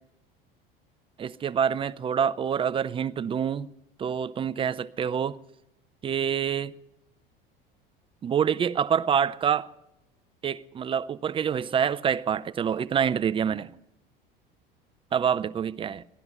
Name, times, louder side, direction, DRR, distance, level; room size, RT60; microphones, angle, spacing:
voice 1, 1.2-3.7 4.0-5.4 6.0-6.7 8.2-9.7 10.4-13.7 15.1-16.0, right 8 dB, 20° right, 0.4 m, -26 dB
16.5 x 12.0 x 5.7 m
figure-of-eight pair, 70°, 29 cm